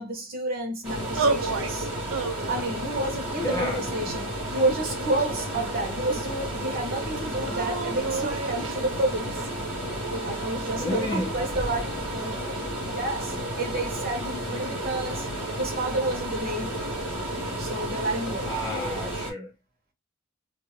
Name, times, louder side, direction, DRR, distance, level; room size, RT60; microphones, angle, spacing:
voice 1, 0.0-1.9 2.5-9.4 9.9-12.5 12.9-15.3 15.6-16.8 17.6-18.5, right 2 dB, 45° right, 1.0 m, -30 dB
sound 1, 0.8-19.3, right 1 dB, 5° right, 1.4 m, -32 dB
sound 2, 1.2-1.7 2.1-2.8 3.4-4.3 5.1-6.1 7.4-8.8, right 4 dB, 75° right, 0.5 m, -31 dB
voice 2, 3.3-3.9 10.7-11.4 18.4-19.5, left 1 dB, 20° left, 1.2 m, -31 dB
2.9 x 2.6 x 3.0 m
head